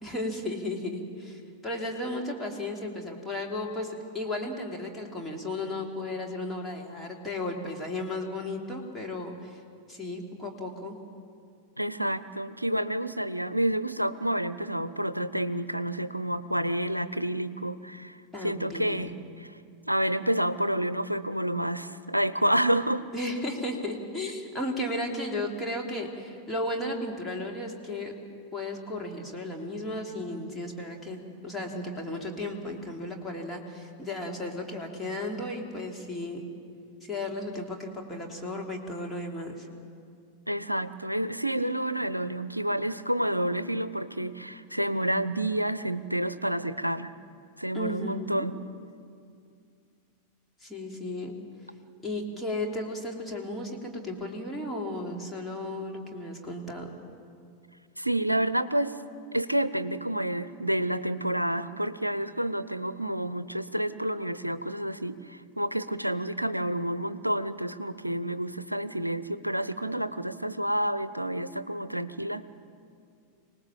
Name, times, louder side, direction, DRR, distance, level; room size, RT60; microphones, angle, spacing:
voice 1, 0.0-9.6 9.9-11.0 18.3-19.0 23.1-28.1 28.5-36.4 37.1-39.7 47.7-48.5 50.6-51.3 52.0-56.9, left 1 dB, 10° left, -1 dB, 3.1 m, -34 dB
voice 2, 11.8-19.5 19.9-23.0 40.5-47.1 47.6-48.5 58.0-59.0 59.3-72.5, right 1 dB, 90° right, 15 dB, 0.7 m, -29 dB
25.5 x 19.0 x 7.4 m, 2.4 s
figure-of-eight pair, 90°, 0 cm